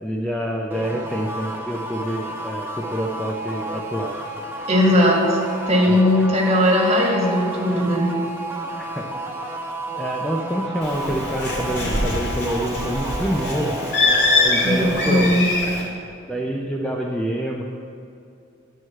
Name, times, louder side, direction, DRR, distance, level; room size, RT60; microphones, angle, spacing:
voice 1, 0.0-4.2 5.9-6.3 8.8-9.1 9.9-13.8 14.4-15.3 16.3-17.6, equal, 5° left, -1 dB, 0.5 m, -27 dB
sound 1, 0.7-15.3, right 2 dB, 10° right, 0.9 m, -31 dB
voice 2, 4.7-5.4 5.7-8.1 14.6-15.4, left 1 dB, 30° right, -3 dB, 2.0 m, -18 dB
Bird, 10.8-15.8, left 2 dB, 55° left, 2.5 m, -23 dB
9.6 x 4.7 x 7.6 m, 2.5 s
head